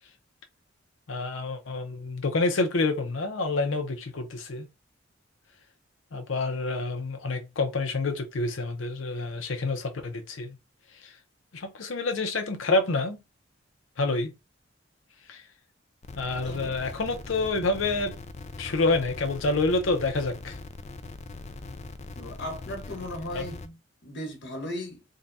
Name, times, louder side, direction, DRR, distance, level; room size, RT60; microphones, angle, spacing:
voice 1, 1.1-4.7 6.1-10.6 10.9-11.2 11.5-13.2 14.0-14.3 15.2-15.5 16.2-18.2 18.6-20.6 23.3-23.4, left 3 dB, 80° left, 0.7 m, -28 dB
sound 1, 16.0-23.7, left 3 dB, 35° left, 0.4 m, -41 dB
voice 2, 22.1-23.8 24.0-25.0, left 1 dB, 65° left, 1.3 m, -36 dB
3.7 x 2.3 x 4.0 m
head